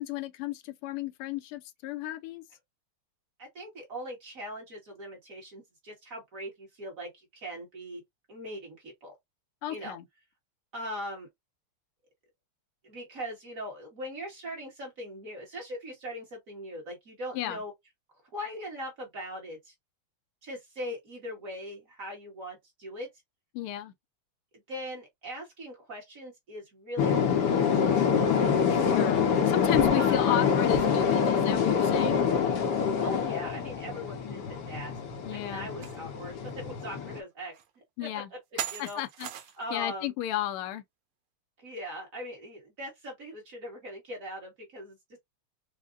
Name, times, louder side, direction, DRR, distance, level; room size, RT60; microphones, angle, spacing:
voice 1, 0.0-2.4 9.6-10.0 17.3-17.6 23.5-23.9 28.7-32.3 34.2-34.4 35.2-35.7 38.0-38.3 38.8-39.3 39.7-40.8, left 13 dB, 80° left, 1.5 m, -34 dB
voice 2, 3.4-8.0 8.3-9.1 9.7-10.0 10.7-11.3 12.8-17.7 18.3-19.7 20.4-23.1 24.7-27.5 27.7-27.8 28.7-29.0 30.0-30.4 33.0-34.9 35.3-37.5 38.0-38.4 38.7-39.0 39.6-40.1 41.6-45.0, equal, 45° right, 1.5 m, -40 dB
sound 1, 27.0-37.2, left 7 dB, 65° left, 1.1 m, -26 dB
sound 2, 35.8-36.0 36.5-36.6 37.5-37.6 38.6-39.7, right 10 dB, 80° right, 1.6 m, -37 dB
4.9 x 2.1 x 2.4 m
omnidirectional pair, 2.4 m